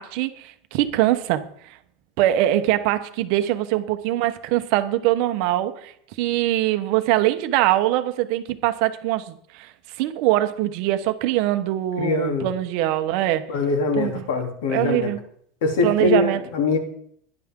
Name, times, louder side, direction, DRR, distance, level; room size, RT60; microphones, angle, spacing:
voice 1, 0.0-1.8 2.2-13.5 14.0-14.3 14.7-15.2 15.8-16.4, right 14 dB, 50° right, 9 dB, 1.0 m, -23 dB
voice 2, 12.0-12.5 13.5-15.1 15.6-16.8, left 3 dB, 75° left, 3 dB, 3.0 m, -23 dB
17.5 x 11.0 x 3.7 m, 0.65 s
supercardioid pair, 175°, 0 cm